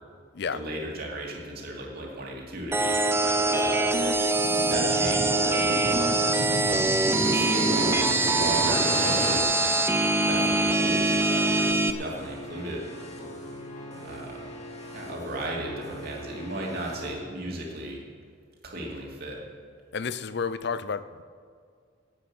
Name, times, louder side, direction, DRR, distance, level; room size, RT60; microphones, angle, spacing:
voice 1, 0.5-9.8 10.3-12.8 14.0-14.5 14.9-18.0 18.6-19.4, right 1 dB, 55° right, -2 dB, 2.9 m, -36 dB
sound 1, 2.7-11.9, right 2 dB, 15° right, 0.6 m, -24 dB
sound 2, 4.3-9.4, right 1 dB, 30° right, 1.0 m, -31 dB
sound 3, 11.9-17.1, left 1 dB, 35° left, 2.4 m, -41 dB
voice 2, 19.9-21.2, left 5 dB, 60° left, 14 dB, 0.6 m, -31 dB
17.0 x 8.7 x 6.2 m, 2.1 s
head